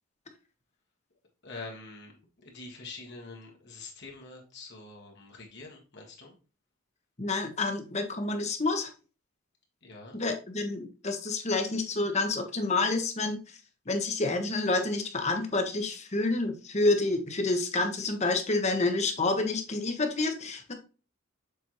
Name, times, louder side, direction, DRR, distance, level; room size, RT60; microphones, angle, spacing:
voice 1, 1.4-2.1 2.4-6.4 9.8-10.2, left 3 dB, 55° left, 1 dB, 1.4 m, -45 dB
voice 2, 7.2-8.9 10.1-13.6 13.9-20.7, left 2 dB, 30° left, 5 dB, 1.0 m, -28 dB
6.9 x 4.4 x 3.1 m, 0.34 s
head